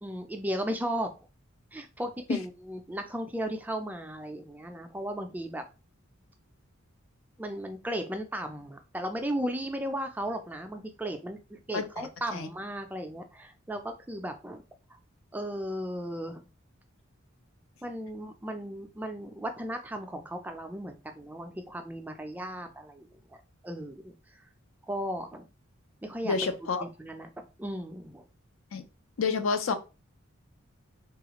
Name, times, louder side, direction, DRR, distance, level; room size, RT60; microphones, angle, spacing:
voice 1, 0.0-1.1 1.7-5.6 7.4-14.6 14.9-15.0 15.3-16.5 17.8-23.4 23.6-24.4 24.9-25.5 26.0-26.5 26.8-27.3 27.6-28.2, right 1 dB, 10° right, 6 dB, 0.3 m, -36 dB
voice 2, 11.7-12.5 26.2-26.8 28.7-28.8 29.2-29.7, left 4 dB, 70° left, 9 dB, 0.5 m, -29 dB
3.4 x 2.4 x 2.9 m, 0.30 s
head